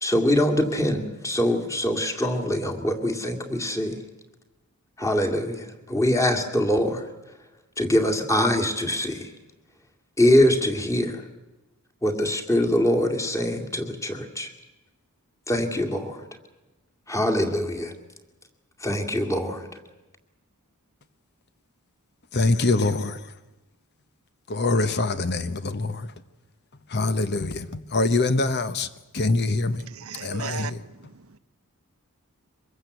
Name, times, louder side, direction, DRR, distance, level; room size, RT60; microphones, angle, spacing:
voice 1, 0.0-4.0 5.0-7.1 7.8-9.2 10.2-11.2 12.0-14.5 15.5-16.2 17.1-17.9 18.8-19.7, left 1 dB, 15° left, 2.4 m, -23 dB
voice 2, 22.3-23.3 24.5-26.1 26.9-28.9 29.1-29.8 30.2-30.8, left 2 dB, 50° left, 1.0 m, -24 dB
voice 3, 29.9-30.8, right 6 dB, 65° right, 0.9 m, -35 dB
24.5 x 21.0 x 8.1 m
head